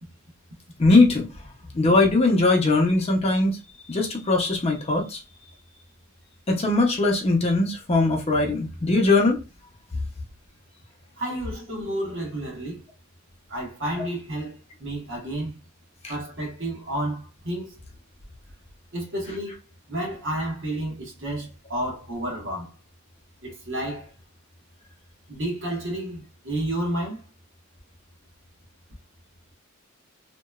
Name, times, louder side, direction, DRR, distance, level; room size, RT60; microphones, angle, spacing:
voice 1, 0.8-1.3 1.7-3.6 3.9-5.2 6.5-9.4, left 2 dB, 30° left, 0.6 m, -20 dB
voice 2, 11.2-12.8 13.5-15.5 16.1-17.8 18.9-19.5 19.9-22.7 23.4-24.1 25.3-27.2, right 1 dB, 65° right, 1.1 m, -31 dB
2.9 x 2.1 x 2.3 m
head